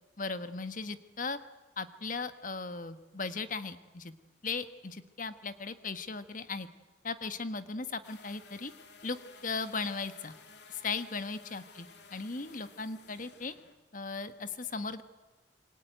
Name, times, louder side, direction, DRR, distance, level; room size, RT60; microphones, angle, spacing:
voice 1, 0.2-1.4 1.8-4.1 4.4-6.7 7.0-8.7 9.0-9.2 9.4-10.3 10.7-13.6 13.9-15.0, left 4 dB, 45° left, 11 dB, 1.4 m, -37 dB
sound 1, 8.0-13.8, left 4 dB, 70° left, 2.6 m, -55 dB
27.0 x 23.0 x 9.1 m, 1.2 s
head